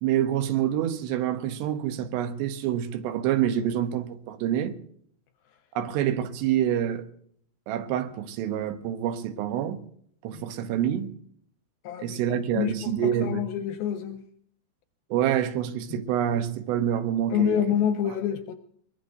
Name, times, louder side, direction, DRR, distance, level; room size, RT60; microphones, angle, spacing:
voice 1, 0.0-4.8 5.8-7.0 7.7-9.8 10.2-11.1 12.0-13.4 15.1-17.6 18.1-18.2, right 10 dB, 85° right, 3.1 m, -27 dB
voice 2, 11.9-12.2 12.6-14.2 17.3-18.5, left 9 dB, 80° left, 2.2 m, -27 dB
23.0 x 21.5 x 2.7 m
omnidirectional pair, 4.9 m